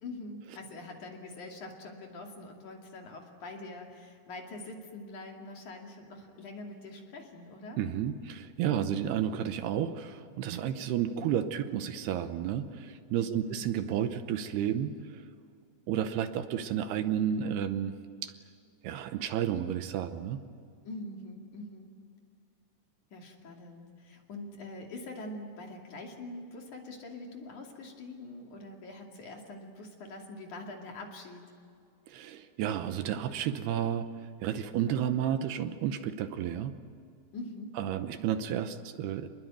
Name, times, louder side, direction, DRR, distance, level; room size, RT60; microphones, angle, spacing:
voice 1, 0.0-7.8 10.7-10.9 13.3-13.6 20.9-21.9 23.1-31.5 37.3-37.8, left 2 dB, 50° left, 1 dB, 3.6 m, -44 dB
voice 2, 7.8-15.2 15.9-17.9 18.2-18.3 18.8-20.4 32.1-34.1 34.4-36.8 37.8-39.3, right 9 dB, 75° right, 9 dB, 2.8 m, -31 dB
27.5 x 21.0 x 9.2 m, 2.3 s
omnidirectional pair, 4.9 m